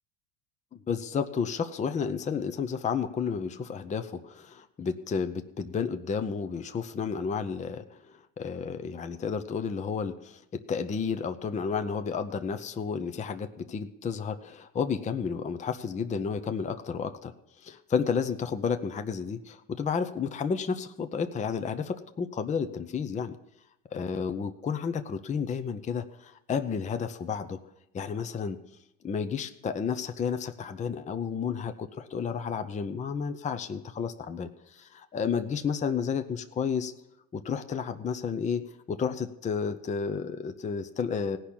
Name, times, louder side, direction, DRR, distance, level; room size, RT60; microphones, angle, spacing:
voice 1, 0.7-8.0 8.4-17.3 17.6-23.4 23.9-27.6 27.9-28.6 29.0-36.9 37.3-41.4, left 6 dB, 20° left, 9 dB, 0.7 m, -31 dB
17.0 x 5.9 x 8.5 m, 0.87 s
supercardioid pair, 120°, 40 cm